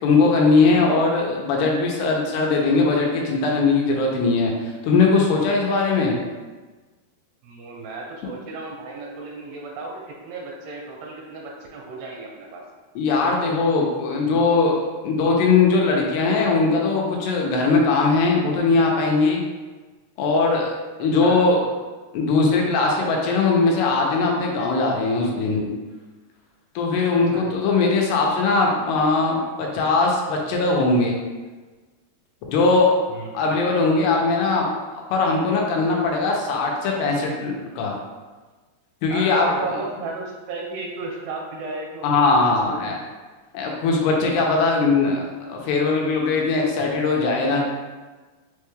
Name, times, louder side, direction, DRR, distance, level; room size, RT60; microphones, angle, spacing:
voice 1, 0.0-4.5 4.8-6.2 13.0-19.4 20.2-20.7 21.0-21.6 22.1-25.7 26.8-31.1 32.5-32.9 33.3-34.7 35.1-38.0 39.0-39.8 42.0-43.0 43.5-45.2 45.5-47.6, left 3 dB, 90° left, -1 dB, 2.7 m, -20 dB
voice 2, 7.4-12.6 21.2-21.4 27.2-27.5 33.1-33.7 39.1-43.0, right 3 dB, 85° right, -1 dB, 2.7 m, -35 dB
6.1 x 2.2 x 3.1 m, 1.3 s
omnidirectional pair, 4.7 m